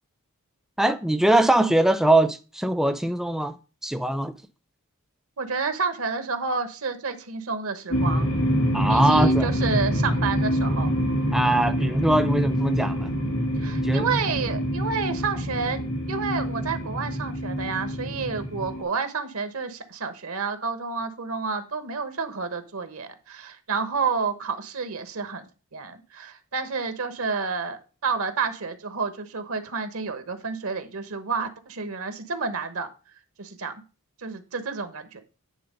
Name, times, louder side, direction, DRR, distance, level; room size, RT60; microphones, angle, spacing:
voice 1, 0.8-3.6 3.8-4.3 8.7-9.5 11.3-13.1 13.8-14.1, right 1 dB, ahead, 0.4 m, -22 dB
voice 2, 5.4-8.3 8.9-10.9 13.6-15.8 16.1-25.5 25.7-32.9 33.4-33.7 34.2-35.2, right 5 dB, 75° right, 1.1 m, -30 dB
sound 1, 7.9-18.8, equal, 85° left, 2.8 m, -25 dB
9.4 x 3.7 x 5.2 m
head